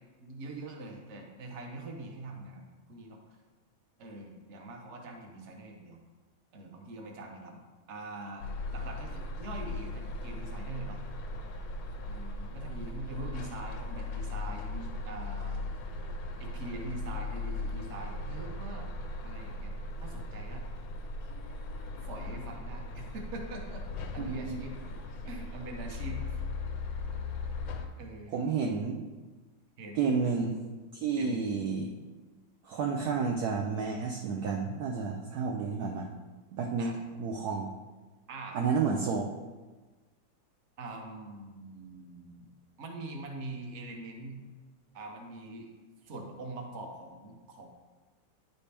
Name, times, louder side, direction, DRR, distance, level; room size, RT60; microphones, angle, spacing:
voice 1, 0.2-3.2 4.0-6.0 6.5-7.6 7.9-8.5 8.7-11.0 12.0-15.6 16.4-18.9 19.2-19.7 20.0-20.7 22.0-23.8 24.1-24.9 25.3-26.4 28.0-28.4 29.8-30.2 31.1-31.5 36.8-37.0 38.3-38.6 40.8-42.5 42.8-44.4 44.9-45.7 46.0-47.7, right 2 dB, 50° right, 1 dB, 0.9 m, -43 dB
sound 1, 8.4-27.9, left 2 dB, 90° left, 1.5 m, -38 dB
voice 2, 24.2-24.6 28.3-29.0 30.0-30.5 30.9-32.0 32.6-36.1 36.5-36.9 37.2-37.7 38.5-39.2, right 5 dB, 75° right, 1 dB, 0.9 m, -30 dB
9.5 x 4.2 x 3.4 m, 1.3 s
omnidirectional pair, 2.2 m